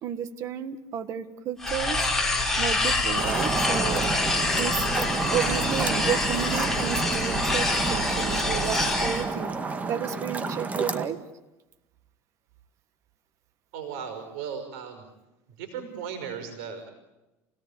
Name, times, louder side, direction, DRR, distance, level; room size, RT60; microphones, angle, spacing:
voice 1, 0.0-2.1 2.6-4.2 4.6-4.8 5.3-9.6 9.9-11.2, right 8 dB, 50° right, 11 dB, 1.8 m, -32 dB
sound 1, 1.6-9.2, left 2 dB, 5° left, 4.6 m, -26 dB
sound 2, 3.2-11.1, right 3 dB, 20° right, 2.0 m, -29 dB
voice 2, 13.7-15.0 15.6-16.9, right 7 dB, 85° right, 7 dB, 5.6 m, -36 dB
28.0 x 18.0 x 8.8 m, 1.0 s
supercardioid pair, 125°, 7 cm